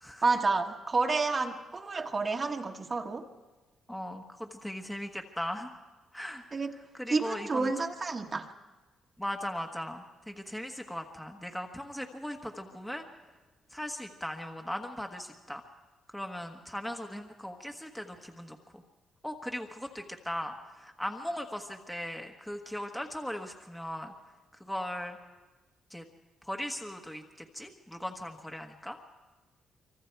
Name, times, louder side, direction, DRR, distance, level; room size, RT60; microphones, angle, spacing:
voice 1, 0.2-3.3 6.5-6.7 7.1-8.5, right 3 dB, 30° right, 4 dB, 1.5 m, -30 dB
voice 2, 3.9-5.7 6.1-6.4 6.9-7.8 9.2-13.0 13.7-15.6 16.1-18.8 19.2-24.1 24.6-25.2 25.9-26.0 26.4-29.0, left 1 dB, 5° left, 3 dB, 1.4 m, -38 dB
25.0 x 24.5 x 4.7 m, 1.2 s
cardioid pair, 90°, 0 cm